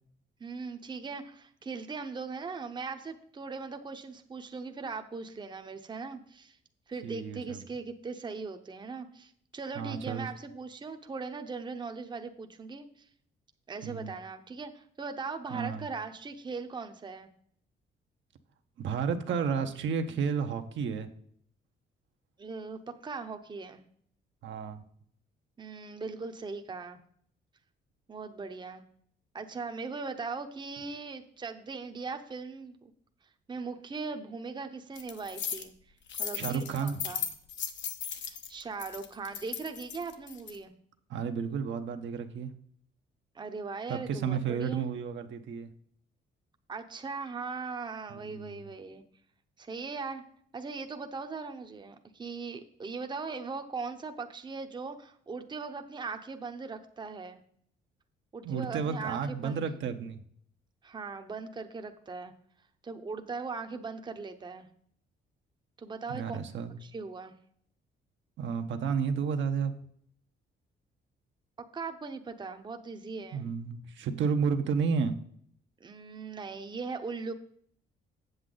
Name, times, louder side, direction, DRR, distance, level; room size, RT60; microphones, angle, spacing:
voice 1, 0.4-6.6 6.9-13.1 13.7-17.3 22.4-23.8 25.6-27.0 28.1-28.8 29.3-32.9 33.5-35.7 36.2-37.2 38.2-40.7 43.3-44.9 46.7-49.0 49.6-50.2 50.5-57.4 58.3-59.6 60.8-62.3 62.8-64.7 65.8-66.4 66.8-67.3 71.6-73.5 75.8-77.3, right 4 dB, 25° right, 6 dB, 0.7 m, -39 dB
voice 2, 7.0-7.6 9.8-10.3 13.8-14.1 15.5-15.8 18.8-21.1 24.4-24.8 36.3-37.0 41.1-42.5 43.9-45.7 48.1-48.7 58.4-60.2 66.1-66.8 68.4-69.7 73.3-75.1, right 6 dB, 70° right, 7 dB, 0.9 m, -32 dB
sound 1, 35.0-35.6 36.1-40.6, left 8 dB, 65° left, 1.0 m, -37 dB
7.9 x 7.4 x 3.8 m, 0.63 s
cardioid pair, 90°, 20 cm